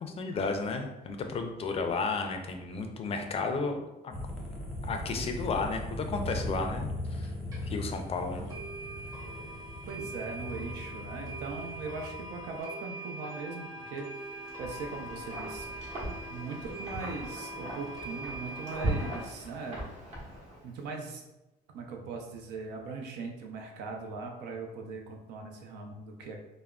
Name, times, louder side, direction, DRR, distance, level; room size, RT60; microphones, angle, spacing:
voice 1, 0.0-3.8 4.0-4.1 4.8-7.3 7.6-8.5, left 4 dB, 35° left, 5 dB, 0.4 m, -33 dB
sound 1, 4.1-12.6, left 1 dB, 5° left, 0.7 m, -39 dB
sound 2, 7.2-7.3 7.5-7.6 8.0-8.1 8.5-19.2, right 2 dB, 20° right, 1.0 m, -42 dB
voice 2, 9.9-14.1 14.6-15.7 16.3-19.9 20.6-21.2 21.7-26.4, right 4 dB, 80° right, 2 dB, 0.5 m, -40 dB
Wind, 14.3-20.8, right 1 dB, 40° right, 1.1 m, -39 dB
3.4 x 2.0 x 2.3 m, 0.97 s
cardioid pair, 110°, 17 cm